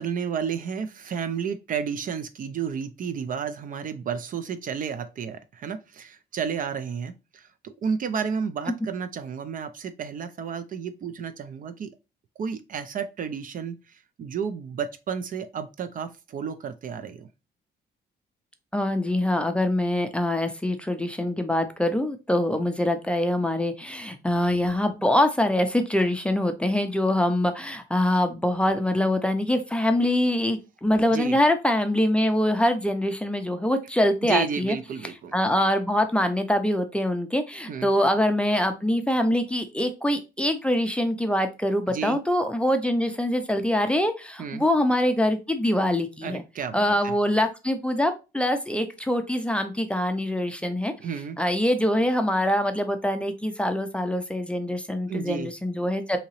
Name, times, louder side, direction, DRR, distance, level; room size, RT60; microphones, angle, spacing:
voice 1, 0.0-11.9 12.4-17.3 31.1-31.4 34.2-35.3 37.7-37.9 41.9-42.2 44.4-44.6 46.2-47.1 51.0-51.4 55.1-55.5, right 7 dB, 50° right, 0.4 m, -32 dB
voice 2, 18.7-34.8 35.3-46.4 46.7-50.9 51.4-56.2, left 1 dB, 5° left, 0.5 m, -24 dB
3.8 x 2.8 x 2.9 m
cardioid pair, 125°, 18 cm